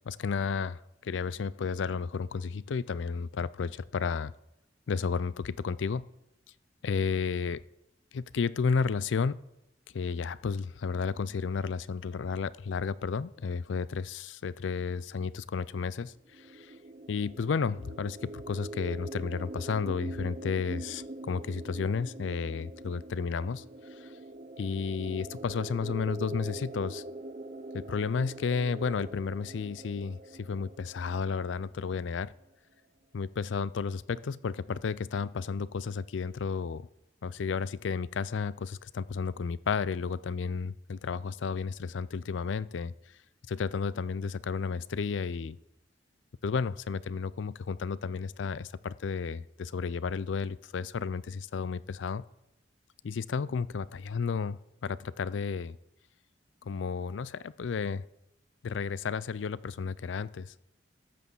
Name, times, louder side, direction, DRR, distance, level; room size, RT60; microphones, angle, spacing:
voice 1, 0.1-4.3 4.9-6.1 6.8-7.6 8.1-9.4 9.9-16.7 17.1-23.6 24.0-24.1 24.6-27.0 27.7-32.3 33.1-36.9 37.2-42.9 43.5-45.6 46.4-52.2 53.0-55.8 56.6-58.0 58.6-60.5, left 5 dB, 85° left, 19 dB, 0.4 m, -32 dB
sound 1, 16.3-31.9, right 2 dB, 40° right, 0.6 m, -43 dB
12.5 x 6.2 x 7.0 m, 0.87 s
head